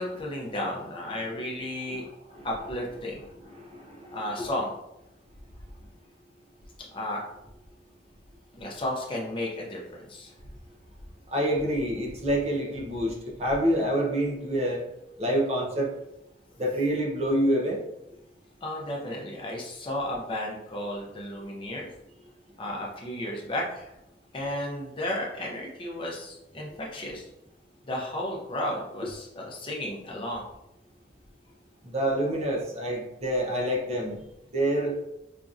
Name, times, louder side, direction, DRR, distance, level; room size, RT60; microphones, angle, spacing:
voice 1, 0.0-2.1 2.4-3.2 4.1-4.7 6.8-7.2 8.6-10.3 18.6-21.9 22.6-23.9 24.3-27.2 27.9-30.4, left 1 dB, 30° left, -2 dB, 0.7 m, -33 dB
voice 2, 1.9-2.5 3.6-4.2 11.3-14.8 15.2-15.9 16.6-17.8 29.0-29.1 31.8-34.2 34.5-34.9, right 1 dB, 35° right, -1 dB, 0.6 m, -27 dB
4.9 x 2.8 x 2.4 m, 0.88 s
head